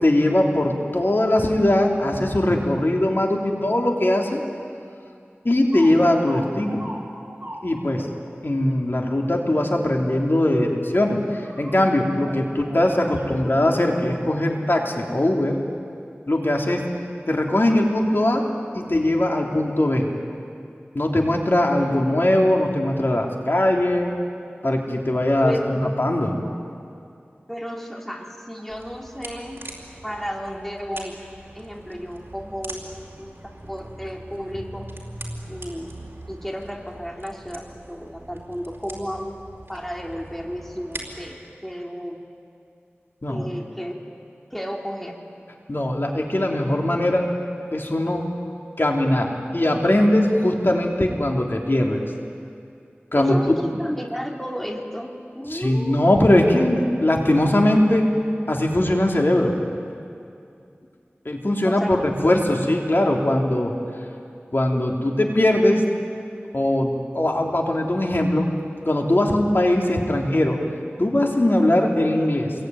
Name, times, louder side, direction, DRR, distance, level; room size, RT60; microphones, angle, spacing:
voice 1, 0.0-4.4 5.4-6.8 7.6-8.1 8.4-15.6 16.3-16.8 17.3-18.5 18.7-20.1 20.9-24.2 24.6-26.3 43.2-43.5 45.7-47.3 47.7-48.3 48.8-52.0 53.1-53.6 55.5-58.1 58.5-59.5 61.2-63.7 64.5-65.8 66.5-68.5 68.8-70.6 71.0-72.5, left 1 dB, 60° left, 0 dB, 3.3 m, -20 dB
sound 1, 5.7-8.3 10.2-10.6 11.3-11.9 12.2-13.3, right 1 dB, 35° right, 5.1 m, -40 dB
voice 2, 25.4-25.9 27.5-29.6 30.0-31.2 31.5-32.9 33.2-34.9 35.5-39.4 39.7-42.2 43.3-44.2 44.5-45.2 53.2-56.0 56.3-56.5 61.6-61.9, equal, 5° left, 0 dB, 2.9 m, -33 dB
sound 2, 28.7-41.4, right 1 dB, 60° right, 4.4 m, -41 dB
28.0 x 22.0 x 9.5 m, 2.4 s
wide cardioid pair, 50°, 4 cm